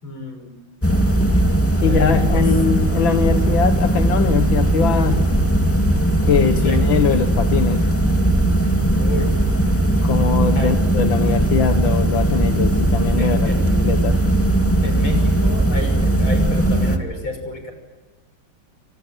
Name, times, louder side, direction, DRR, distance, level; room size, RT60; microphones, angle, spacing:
voice 1, 0.0-0.5 1.8-2.5 6.6-6.8 9.0-9.3 10.6-10.7 13.2-13.7 14.8-17.7, left 2 dB, 90° left, 6 dB, 7.1 m, -30 dB
sound 1, 0.8-17.0, right 1 dB, 5° left, 2.1 m, -18 dB
voice 2, 1.8-5.3 6.2-7.8 10.0-14.2, left 7 dB, 70° left, 7 dB, 2.0 m, -21 dB
30.0 x 26.0 x 7.5 m, 1.3 s
omnidirectional pair, 2.2 m